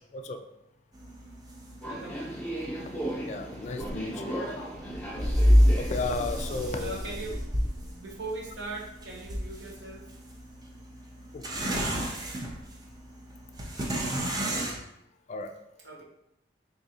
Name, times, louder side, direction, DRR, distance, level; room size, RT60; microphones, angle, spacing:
sound 1, 0.9-14.8, equal, 20° right, 0.5 m, -30 dB
Subway metro underground, 1.8-6.8, right 1 dB, 10° left, 0.8 m, -37 dB
voice 1, 1.9-2.3 6.8-10.1 14.4-14.7 15.8-16.0, right 2 dB, 80° right, -2 dB, 0.8 m, -40 dB
voice 2, 2.9-4.6 5.8-7.0 11.3-11.4 15.3-15.5, left 3 dB, 40° left, 7 dB, 0.3 m, -34 dB
3.6 x 3.1 x 2.8 m, 0.83 s
head